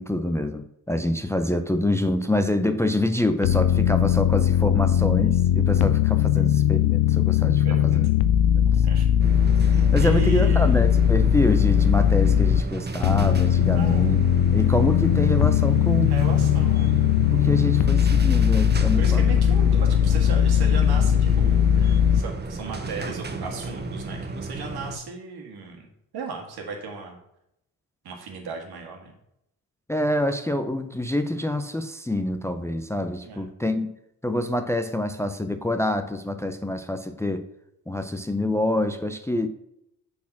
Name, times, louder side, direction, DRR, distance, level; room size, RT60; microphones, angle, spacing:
voice 1, 0.0-8.1 8.6-8.7 9.9-14.2 14.5-16.1 17.3-19.2 29.9-33.9 34.2-37.5 37.9-39.5, left 1 dB, 5° left, 8 dB, 0.5 m, -26 dB
sound 1, 3.4-12.6 13.0-22.2, left 9 dB, 90° left, 0.5 m, -19 dB
voice 2, 7.6-8.0 8.8-9.1 10.0-10.8 13.7-14.1 16.1-17.0 19.0-27.2 28.0-29.1 33.2-33.5, right 5 dB, 75° right, 1 dB, 1.8 m, -36 dB
sound 2, 9.2-25.0, right 3 dB, 25° right, 0.8 m, -32 dB
6.0 x 4.2 x 5.9 m, 0.80 s
cardioid pair, 80°, 39 cm